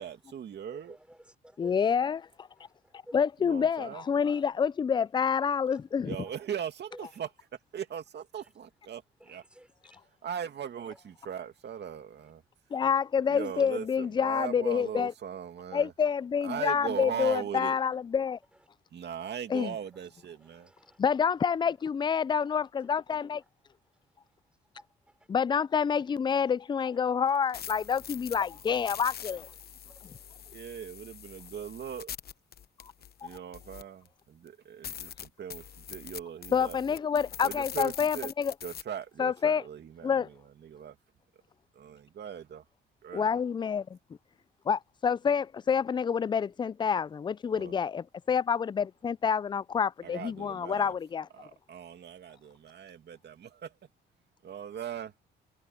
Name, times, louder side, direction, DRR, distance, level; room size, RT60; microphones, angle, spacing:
voice 1, 0.0-1.0 3.4-4.0 6.0-7.3 7.7-9.0 9.3-9.4 10.2-12.4 13.3-15.9 16.4-17.8 18.9-20.7 30.5-32.1 33.2-36.8 37.4-38.3 38.6-40.2 40.6-40.9 41.8-42.6 43.0-43.3 47.5-47.7 50.0-50.9 51.4-53.8 54.4-55.1, right 8 dB, 60° right, 2.5 m, -39 dB
voice 2, 0.7-1.8 2.6-3.2 5.7-5.8 6.2-6.6 6.9-7.2 8.3-8.5 9.2-10.0 10.9-11.0 12.2-12.3 13.5-13.7 18.5-18.6 19.2-19.3 19.8-20.1 20.4-21.0 23.9-24.0 24.7-25.3 26.8-27.0 29.8-30.1, right 1 dB, 5° right, 4.6 m, -55 dB
voice 3, 1.6-2.5 3.1-6.2 12.7-15.1 15.7-18.4 19.5-19.7 21.0-23.4 25.3-29.5 32.8-32.9 33.2-33.3 36.5-38.5 39.2-39.6 40.0-40.3 43.1-44.0 44.7-51.5, left 7 dB, 25° left, 0.3 m, -28 dB
sound 1, 27.3-34.1 34.5-34.6 34.8-38.8, left 9 dB, 50° left, 0.9 m, -44 dB
cardioid pair, 90°, 20 cm